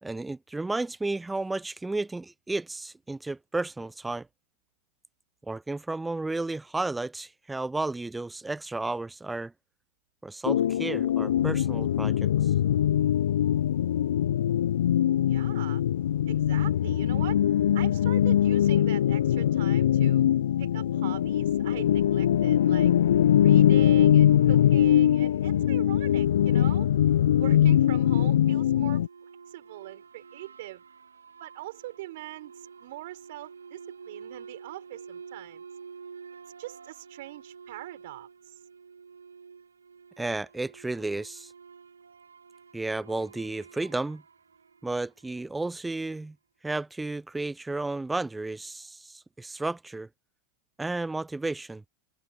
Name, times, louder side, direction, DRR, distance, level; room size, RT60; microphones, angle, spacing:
voice 1, 0.0-4.3 5.5-9.5 10.2-12.5 40.2-41.5 42.7-44.2 44.8-46.4 46.6-50.1 50.8-51.8, right 2 dB, 10° right, 0.4 m, -32 dB
sound 1, 10.4-29.1, left 10 dB, 70° left, 0.4 m, -22 dB
voice 2, 15.3-15.8 16.3-17.4 17.7-20.2 20.6-22.9 23.4-26.9 27.4-29.0 29.5-30.8 31.4-35.7 36.6-38.6, right 17 dB, 65° right, 6.4 m, -42 dB
sound 2, 28.9-45.5, right 5 dB, 85° right, 2.7 m, -49 dB
figure-of-eight pair, 85°, 0 cm